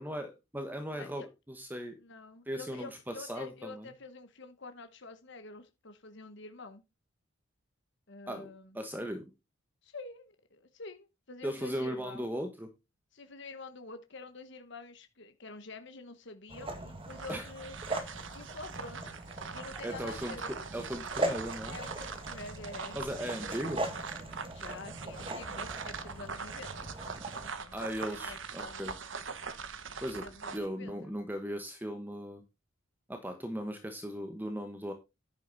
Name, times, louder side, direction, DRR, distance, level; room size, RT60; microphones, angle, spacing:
voice 1, 0.0-1.9 2.5-3.9 8.3-8.5 8.7-9.2 11.4-12.7 17.3-17.5 19.8-20.4 20.7-21.8 22.9-23.8 27.7-28.9 30.0-30.2 30.5-32.4 33.1-34.9, equal, 10° right, 6 dB, 1.2 m, -38 dB
voice 2, 0.9-1.3 2.0-6.8 8.1-8.8 9.8-12.3 13.1-17.8 18.3-19.1 19.5-20.6 21.6-23.4 24.5-26.9 27.4-27.8 28.1-28.9 30.1-31.1, left 3 dB, 55° left, 8 dB, 1.1 m, -47 dB
sound 1, 16.5-27.5, right 1 dB, 25° right, 1.9 m, -40 dB
sound 2, 17.0-30.7, right 5 dB, 60° right, 1.2 m, -42 dB
10.5 x 7.9 x 4.0 m, 0.25 s
head